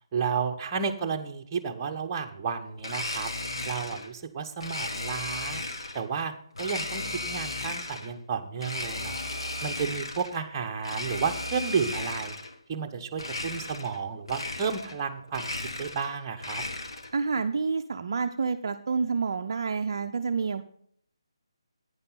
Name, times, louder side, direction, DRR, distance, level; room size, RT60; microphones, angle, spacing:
voice 1, 0.1-3.3 3.6-5.6 5.9-6.3 6.6-9.2 9.6-12.4 12.7-16.6, right 6 dB, 20° right, 3 dB, 1.0 m, -32 dB
Domestic sounds home sounds, 2.8-4.1 4.6-6.0 6.5-8.1 8.6-10.4 10.8-12.6 13.1-14.0 14.3-15.0 15.3-17.2, left 2 dB, 65° left, 1.6 m, -35 dB
voice 2, 17.1-20.6, right 5 dB, 45° right, 7 dB, 0.6 m, -28 dB
11.0 x 9.6 x 4.1 m, 0.65 s
figure-of-eight pair, 150°, 3 cm